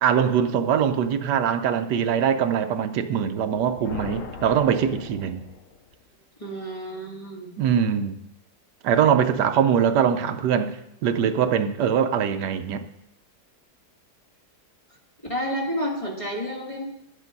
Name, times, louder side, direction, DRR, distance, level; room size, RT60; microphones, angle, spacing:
voice 1, 0.0-5.5 7.6-8.2 8.8-12.8, right 8 dB, 80° right, 9 dB, 1.3 m, -22 dB
sound 1, 3.5-6.0, left 4 dB, 55° left, 1.3 m, -39 dB
voice 2, 6.4-7.5 15.3-16.9, equal, 20° left, -2 dB, 2.3 m, -30 dB
11.5 x 8.4 x 5.3 m, 0.80 s
omnidirectional pair, 1.8 m